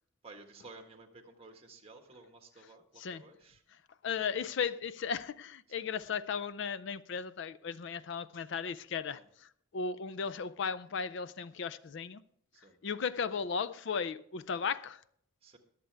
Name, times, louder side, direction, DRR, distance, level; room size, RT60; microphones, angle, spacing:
voice 1, 0.2-3.6 9.1-9.2 12.5-12.8 15.4-15.6, right 3 dB, 25° right, 1.5 m, -54 dB
voice 2, 4.0-12.2 12.8-15.0, left 6 dB, 55° left, 0.4 m, -36 dB
22.0 x 7.6 x 3.4 m
head